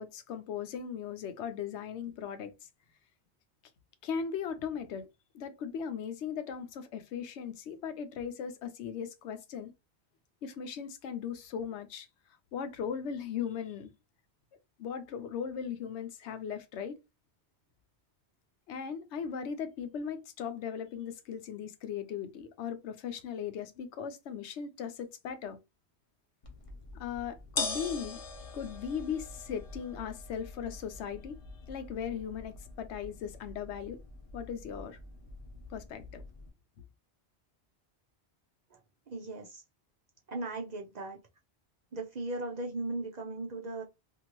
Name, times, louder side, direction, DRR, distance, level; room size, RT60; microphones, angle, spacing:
voice 1, 0.0-2.5 4.0-5.1 5.3-9.7 10.4-12.1 12.5-13.9 14.8-17.0 18.7-25.6 26.9-28.2 28.5-31.4 31.7-34.0 34.3-35.0 35.7-36.2, left 7 dB, 90° left, 0.9 m, -38 dB
sound 1, 26.4-36.5, left 3 dB, 35° left, 0.6 m, -43 dB
voice 2, 39.1-39.6 40.3-41.2 41.9-43.8, right 2 dB, 50° right, 0.5 m, -37 dB
2.7 x 2.5 x 2.9 m
omnidirectional pair, 1.1 m